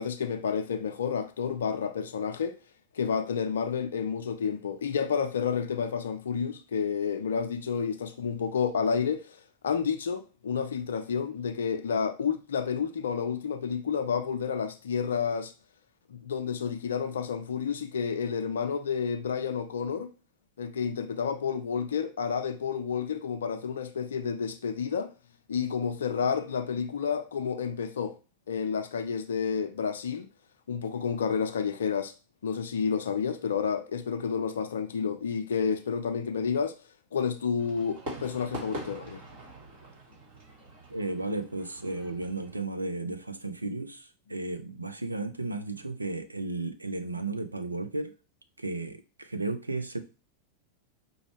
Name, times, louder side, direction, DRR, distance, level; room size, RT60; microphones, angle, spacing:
voice 1, 0.0-2.6 2.9-15.5 16.1-20.1 20.6-25.1 25.5-28.1 28.5-30.3 30.7-32.1 32.4-36.8 37.1-39.2, left 6 dB, 65° left, 0.5 m, -30 dB
Fireworks, 37.6-42.6, right 1 dB, 55° right, 2.1 m, -43 dB
voice 2, 40.9-48.1 48.6-50.0, right 2 dB, 80° right, 0.4 m, -34 dB
4.9 x 2.3 x 3.1 m
figure-of-eight pair, 90°, 0 cm